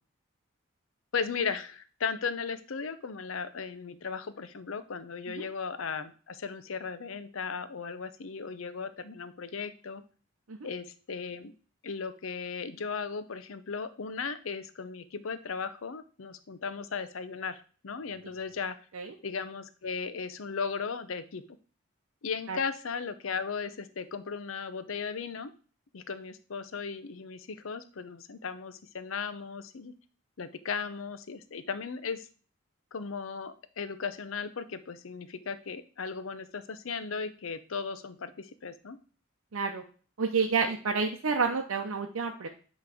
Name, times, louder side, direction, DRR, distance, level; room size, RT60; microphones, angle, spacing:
voice 1, 1.1-10.0 10.6-11.5 11.8-18.8 19.2-21.4 22.2-25.5 25.9-29.9 30.4-32.3 32.9-39.0, left 5 dB, 75° left, 12 dB, 0.6 m, -36 dB
voice 2, 39.5-39.8 40.2-42.5, right 5 dB, 90° right, 2 dB, 0.7 m, -29 dB
8.2 x 3.2 x 4.9 m, 0.39 s
head